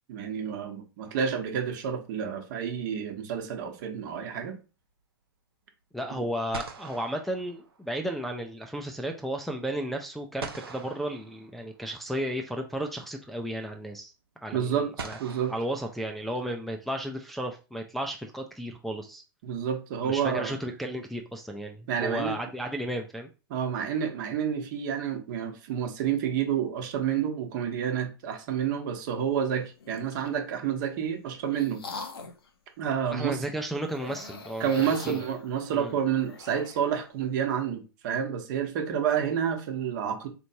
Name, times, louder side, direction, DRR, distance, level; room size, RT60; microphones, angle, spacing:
voice 1, 0.1-4.6 14.5-15.5 19.4-20.5 21.9-22.3 23.5-31.8 32.8-33.4 34.6-40.3, right 8 dB, 55° right, 1.0 m, -29 dB
sound 1, 1.0-1.9 6.0-6.1 6.5-8.2 10.4-12.0 13.3-13.4 15.0-16.6, right 4 dB, 90° right, 0.8 m, -44 dB
voice 2, 5.9-14.1 14.4-14.7 15.0-15.2 15.5-19.2 20.0-23.3 33.1-34.7 35.0-35.2 35.7-35.9, right 1 dB, ahead, 0.4 m, -33 dB
sound 2, 29.8-30.4 31.1-32.5 33.9-36.9, left 4 dB, 85° left, 0.7 m, -43 dB
4.2 x 3.1 x 2.7 m
hypercardioid pair, 115°, 12 cm